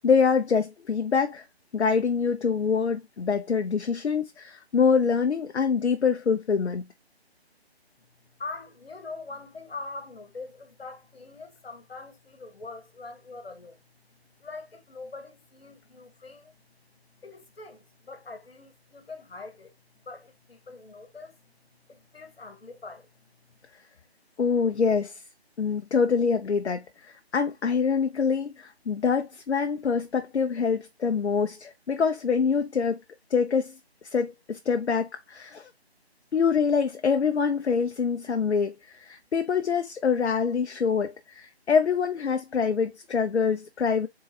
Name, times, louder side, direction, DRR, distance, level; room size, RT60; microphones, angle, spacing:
voice 1, 0.0-1.4 1.7-6.9 24.4-25.2 25.6-33.0 33.3-33.7 34.1-35.7 36.3-44.1, left 6 dB, 85° left, 0.6 m, -25 dB
voice 2, 8.4-13.8 14.4-16.6 17.2-19.7 20.1-21.5 21.9-23.1 23.5-23.6, left 3 dB, 65° left, 1.2 m, -43 dB
3.9 x 2.7 x 3.9 m
figure-of-eight pair, 165°, 32 cm